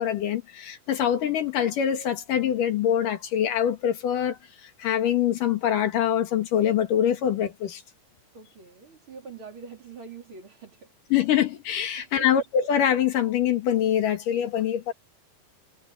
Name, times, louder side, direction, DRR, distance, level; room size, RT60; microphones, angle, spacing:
voice 1, 0.0-7.8 11.1-14.9, left 9 dB, 70° left, 3.3 m, -24 dB
voice 2, 8.3-10.9 12.0-12.3, right 5 dB, 35° right, 4.0 m, -44 dB
omnidirectional pair, 4.0 m